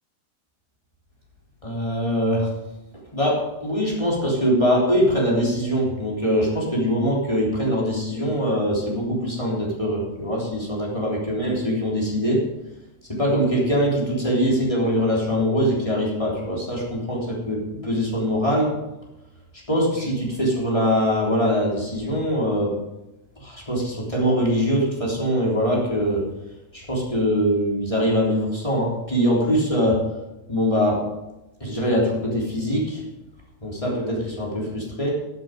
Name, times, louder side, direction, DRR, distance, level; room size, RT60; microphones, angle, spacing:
voice 1, 1.6-2.5 3.1-12.4 13.1-18.8 19.5-22.7 23.4-26.2 26.7-30.0 30.5-31.1 31.6-33.0 33.6-35.1, equal, 10° left, -4 dB, 2.8 m, -23 dB
15.0 x 8.1 x 5.2 m, 0.98 s
omnidirectional pair, 4.8 m